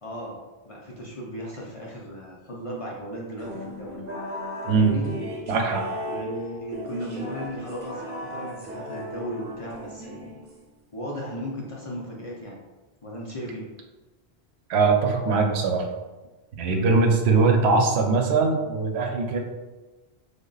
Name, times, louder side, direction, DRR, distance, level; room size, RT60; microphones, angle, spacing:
voice 1, 0.0-0.4 0.6-4.0 4.6-5.1 6.0-10.4 10.9-12.6 13.0-13.6 16.7-16.9, equal, 40° left, -3 dB, 0.5 m, -36 dB
sound 1, 3.4-10.8, equal, 55° right, 0.9 m, -36 dB
voice 2, 5.5-5.9 14.7-15.9 16.6-19.4, right 4 dB, 85° right, 3 dB, 0.8 m, -21 dB
3.4 x 2.1 x 3.8 m, 1.2 s
omnidirectional pair, 1.1 m